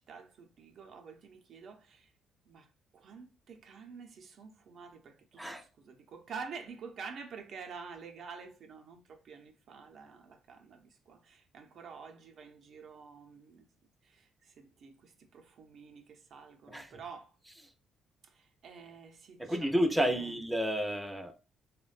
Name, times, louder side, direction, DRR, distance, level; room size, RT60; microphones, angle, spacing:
voice 1, 0.0-2.1 2.5-13.7 14.0-17.4 18.2-20.3, right 5 dB, 65° right, 0.5 m, -49 dB
voice 2, 19.4-21.3, equal, 5° right, 0.5 m, -31 dB
3.0 x 2.1 x 2.4 m
cardioid pair, 90°, 0 cm